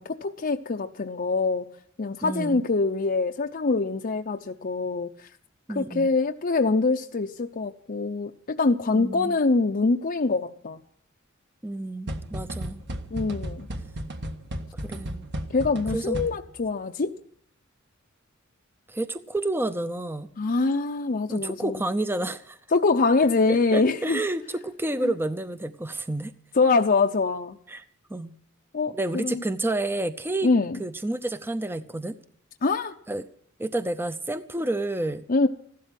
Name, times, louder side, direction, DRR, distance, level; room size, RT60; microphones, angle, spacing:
voice 1, 0.0-1.7 2.0-5.1 5.7-10.8 13.1-13.7 15.5-17.1 20.4-21.8 22.7-24.2 25.0-25.1 26.6-27.6 28.7-29.4 30.4-30.8 32.6-32.9 35.3-35.5, left 3 dB, 45° left, 4 dB, 0.7 m, -24 dB
voice 2, 2.2-2.6 5.7-6.1 8.9-9.4 11.6-12.8 14.8-15.3 15.9-16.2 18.9-20.3 21.3-22.6 23.5-26.3 27.7-27.8 28.1-28.3 28.9-30.5 30.8-32.2 33.1-33.2 33.6-35.3, right 2 dB, 10° right, 11 dB, 0.6 m, -30 dB
sound 1, 12.1-16.7, right 1 dB, 55° right, 1.5 m, -34 dB
15.5 x 12.5 x 7.5 m, 0.66 s
head